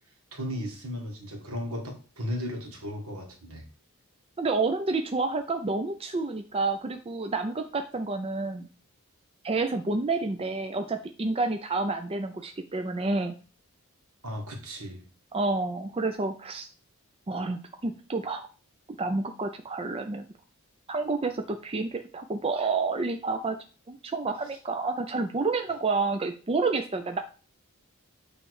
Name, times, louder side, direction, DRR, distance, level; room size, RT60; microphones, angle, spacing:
voice 1, 0.3-3.7 14.2-15.0, equal, 70° right, 2 dB, 2.1 m, -35 dB
voice 2, 4.4-8.7 9.4-13.3 15.3-16.7 17.3-18.5 19.0-20.3 20.9-23.6 23.9-27.2, right 3 dB, 25° right, 6 dB, 0.5 m, -29 dB
8.7 x 3.2 x 4.8 m, 0.36 s
head